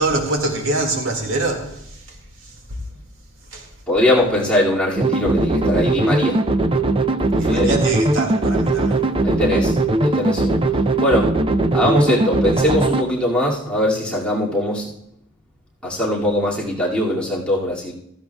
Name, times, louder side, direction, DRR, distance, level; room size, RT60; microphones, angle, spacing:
voice 1, 0.0-2.8 3.5-3.7 7.3-9.0, right 2 dB, 75° right, 2 dB, 2.1 m, -25 dB
voice 2, 3.9-6.4 7.4-7.7 9.2-9.7 10.0-10.6 11.0-11.3 11.7-14.9 15.8-17.9, left 1 dB, 5° left, -6 dB, 2.3 m, -21 dB
sound 1, 5.0-13.0, right 2 dB, 25° right, 0.5 m, -19 dB
15.5 x 14.0 x 2.3 m, 0.76 s
head